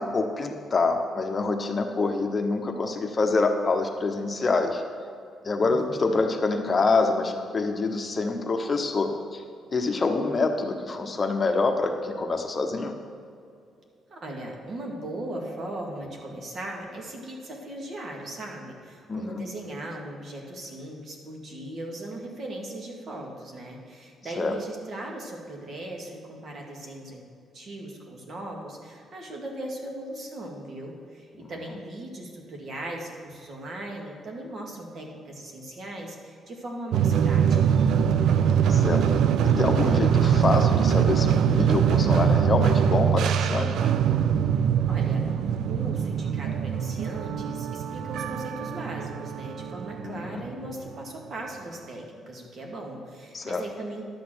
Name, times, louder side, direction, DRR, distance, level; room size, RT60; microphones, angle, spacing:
voice 1, 0.0-4.8 5.4-9.4 9.7-12.9 19.1-19.4 24.4-24.5 31.4-31.5 38.3-39.2 39.4-43.9 50.0-50.4 53.3-53.6, left 3 dB, 35° left, 4 dB, 1.0 m, -26 dB
voice 2, 5.6-6.1 14.1-27.2 27.5-37.8 44.9-54.0, right 1 dB, 55° right, 0 dB, 2.2 m, -38 dB
sound 1, 36.9-51.0, right 8 dB, 75° right, 0.4 m, -23 dB
11.5 x 6.6 x 6.3 m, 2.4 s
cardioid pair, 90°, 0 cm